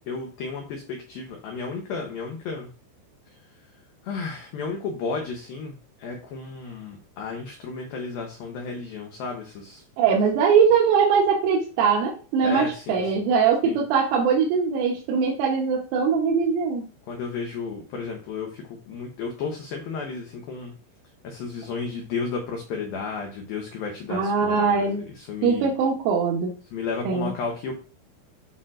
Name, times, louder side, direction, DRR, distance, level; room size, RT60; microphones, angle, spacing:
voice 1, 0.1-2.7 4.0-5.7 6.0-9.8 12.4-13.0 13.7-13.8 17.1-20.7 21.2-25.7 26.7-27.7, left 4 dB, 80° left, 1 dB, 2.1 m, -33 dB
voice 2, 10.0-16.9 24.1-25.0 25.4-26.5 27.1-27.3, right 6 dB, 85° right, -2 dB, 3.6 m, -21 dB
11.5 x 4.4 x 2.5 m, 0.37 s
omnidirectional pair, 5.6 m